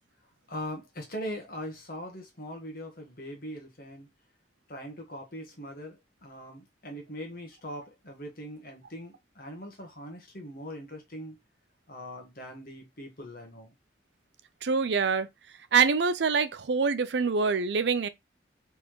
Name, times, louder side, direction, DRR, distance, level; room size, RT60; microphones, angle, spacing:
voice 1, 0.5-4.1 4.7-11.4 11.9-13.7, equal, 50° left, 1.4 m, -41 dB
voice 2, 14.6-15.3 15.7-18.1, right 5 dB, 70° right, 0.5 m, -25 dB
4.1 x 3.6 x 3.1 m
head